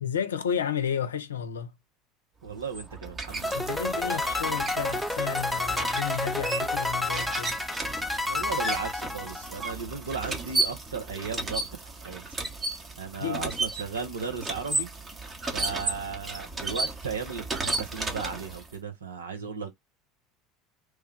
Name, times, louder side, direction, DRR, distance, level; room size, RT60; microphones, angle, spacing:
voice 1, 0.0-1.7 3.5-7.6 13.2-13.5 19.4-19.5, left 8 dB, 75° left, 0.5 m, -32 dB
voice 2, 2.4-3.7 8.3-11.7 12.0-12.2 13.0-14.9 15.5-19.7, right 5 dB, 75° right, 0.8 m, -35 dB
sound 1, 2.5-18.7, right 2 dB, 20° right, 0.9 m, -34 dB
sound 2, 3.4-9.7, left 2 dB, 5° left, 0.4 m, -30 dB
3.2 x 2.2 x 3.4 m
figure-of-eight pair, 70°, 0 cm